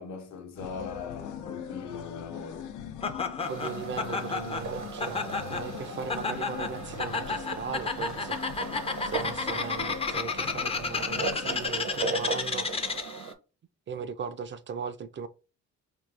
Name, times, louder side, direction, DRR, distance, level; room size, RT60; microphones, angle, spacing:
voice 1, 0.0-2.7, left 5 dB, 65° left, 0.9 m, -40 dB
sound 1, 0.6-11.7, left 9 dB, 85° left, 0.5 m, -42 dB
Laughter, 3.0-13.3, left 4 dB, 20° left, 0.4 m, -32 dB
sound 2, 3.4-13.3, right 5 dB, 75° right, 0.8 m, -38 dB
voice 2, 3.5-8.4 9.0-12.7 13.9-15.3, right 6 dB, 40° right, 0.4 m, -38 dB
4.5 x 2.3 x 2.4 m
cardioid pair, 90°, 30 cm